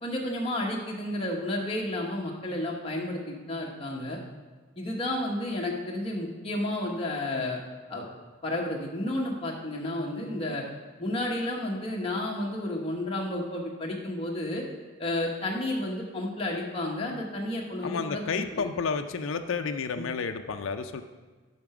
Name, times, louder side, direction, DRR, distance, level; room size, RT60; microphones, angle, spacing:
voice 1, 0.0-4.2 4.8-7.6 7.9-8.0 8.4-10.6 11.0-14.6 15.0-18.2 18.5-18.6 20.0-20.1, left 1 dB, 25° left, -1 dB, 1.1 m, -31 dB
voice 2, 17.8-21.0, left 5 dB, 70° left, 7 dB, 0.4 m, -31 dB
7.2 x 5.8 x 4.8 m, 1.4 s
head